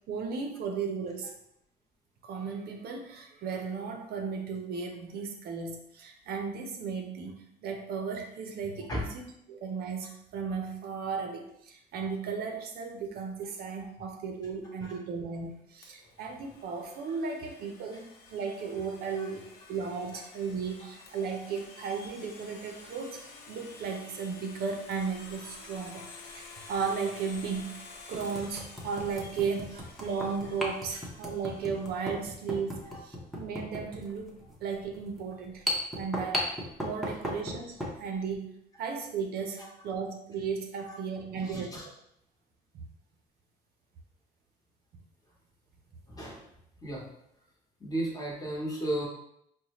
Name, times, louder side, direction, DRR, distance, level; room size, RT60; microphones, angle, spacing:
voice 1, 0.1-1.3 2.3-7.3 7.6-26.1 26.3-26.4 26.7-27.8 28.1-34.3 34.6-35.6 35.9-36.5 36.8-38.5 38.8-41.7, right 5 dB, 65° right, 3 dB, 0.6 m, -35 dB
Domestic sounds home sounds, 15.8-32.6, left 3 dB, 75° left, 0.7 m, -51 dB
sound 1, 25.3-25.4 26.8-26.9 27.5-27.6 28.1-38.0, left 1 dB, ahead, 0.7 m, -37 dB
voice 2, 41.3-41.9 46.1-46.4 46.8-47.1 47.8-49.1, right 1 dB, 20° left, -3 dB, 1.1 m, -35 dB
4.1 x 2.1 x 2.9 m, 0.75 s
cardioid pair, 110°, 17 cm